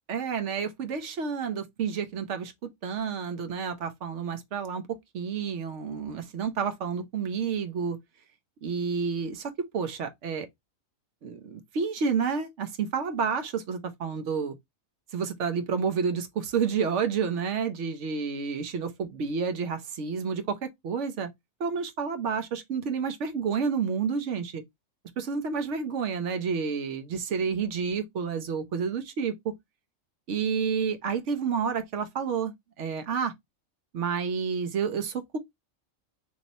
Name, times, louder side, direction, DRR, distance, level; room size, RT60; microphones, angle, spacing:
voice 1, 0.1-2.5 2.8-8.0 8.6-10.5 11.2-14.5 15.1-21.3 21.6-24.6 25.2-29.5 30.3-33.3 33.9-35.4, right 6 dB, 65° right, 1.0 m, -30 dB
3.1 x 2.8 x 3.9 m
omnidirectional pair, 1.4 m